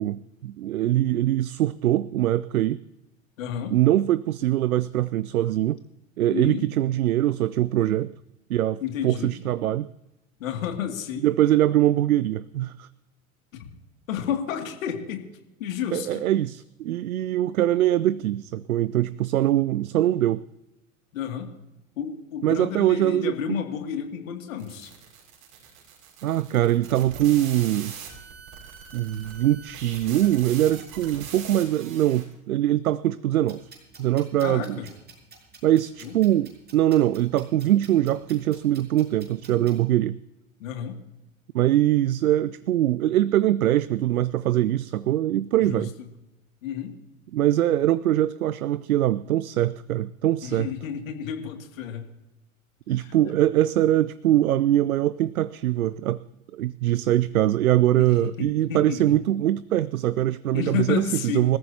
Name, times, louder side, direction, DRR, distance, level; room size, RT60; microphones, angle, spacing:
voice 1, 0.0-2.8 3.7-5.8 6.2-8.1 8.5-9.9 11.2-12.9 15.9-20.4 22.4-23.6 26.2-27.9 28.9-33.6 34.0-34.8 35.6-40.2 41.5-45.9 47.3-50.7 52.9-56.2 56.5-61.6, right 13 dB, 80° right, 0.6 m, -23 dB
voice 2, 3.4-3.7 6.3-6.7 8.8-9.3 10.4-11.3 13.5-13.6 14.1-15.3 15.6-16.2 21.1-21.5 22.0-24.9 34.4-34.9 36.0-36.1 40.6-41.0 45.6-46.1 46.6-46.9 50.4-52.0 53.0-53.3 58.0-59.2 60.5-61.6, left 9 dB, 70° left, 2.6 m, -31 dB
sound 1, 24.6-32.3, right 7 dB, 50° right, 6.0 m, -42 dB
sound 2, 33.4-39.8, right 4 dB, 25° right, 5.9 m, -51 dB
27.0 x 14.0 x 2.9 m
figure-of-eight pair, 85°, 42 cm